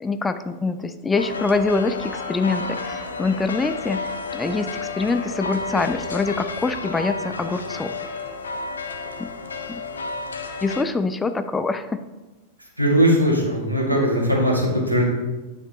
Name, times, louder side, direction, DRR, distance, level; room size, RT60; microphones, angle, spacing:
voice 1, 0.0-7.9 9.2-9.3 9.7-9.8 10.6-12.0, left 3 dB, 15° left, 10 dB, 0.4 m, -25 dB
sound 1, 1.2-10.8, left 3 dB, 70° left, 0.8 m, -31 dB
voice 2, 12.8-15.0, equal, 90° right, -3 dB, 1.9 m, -19 dB
9.4 x 5.7 x 2.9 m, 1.1 s
figure-of-eight pair, 90°, 0 cm